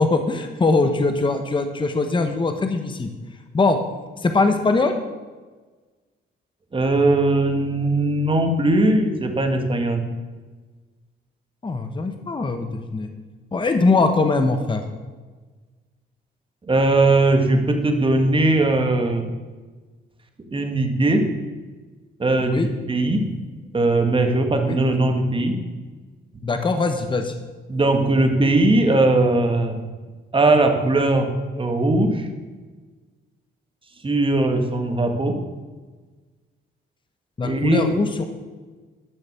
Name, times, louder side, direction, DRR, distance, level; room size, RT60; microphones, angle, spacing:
voice 1, 0.0-3.1 3.5-3.8 4.2-5.0 11.6-13.1 13.5-14.8 22.4-22.7 24.7-24.8 26.4-27.3 37.4-38.2, left 3 dB, 25° left, 6 dB, 1.1 m, -21 dB
voice 2, 6.7-10.0 16.7-19.2 20.5-21.3 22.2-22.6 22.9-23.2 23.7-25.6 27.7-29.8 30.3-31.3 31.6-32.3 34.0-35.4 37.4-37.9, right 2 dB, 25° right, 4 dB, 1.9 m, -19 dB
12.0 x 6.5 x 6.9 m, 1.3 s
cardioid pair, 90°, 20 cm